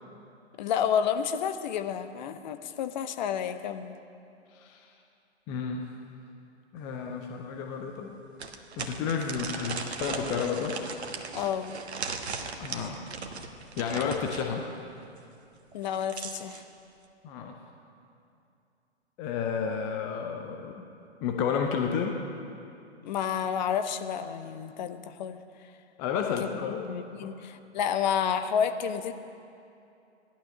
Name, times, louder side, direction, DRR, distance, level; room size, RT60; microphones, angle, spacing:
voice 1, 0.6-4.0 11.3-11.8 15.7-16.6 23.0-25.4 26.4-26.5 26.8-29.1, left 8 dB, 40° left, 9 dB, 0.8 m, -30 dB
voice 2, 4.5-4.9 5.5-5.9 6.7-8.2 8.8-10.8 12.6-13.0 13.8-14.6 17.2-17.5 19.2-20.8 21.2-22.2 26.0-26.8 27.2-27.3, left 6 dB, 10° left, 2 dB, 0.4 m, -31 dB
sound 1, 6.9-7.0 7.5-7.6 8.4-14.5 15.7-16.6, right 4 dB, 65° right, 1.4 m, -38 dB
16.5 x 11.5 x 6.2 m, 2.6 s
figure-of-eight pair, 120°, 35 cm